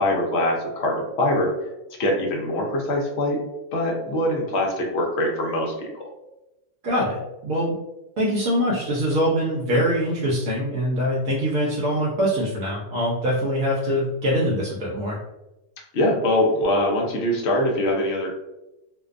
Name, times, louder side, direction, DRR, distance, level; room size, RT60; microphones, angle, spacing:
voice 1, 0.0-1.5 2.0-3.4 3.7-6.0 13.8-13.9 15.9-18.3, left 1 dB, 65° left, 0 dB, 0.7 m, -23 dB
voice 2, 6.8-7.7 8.2-15.2, equal, 70° right, -5 dB, 0.9 m, -23 dB
2.5 x 2.2 x 2.4 m, 0.96 s
omnidirectional pair, 1.6 m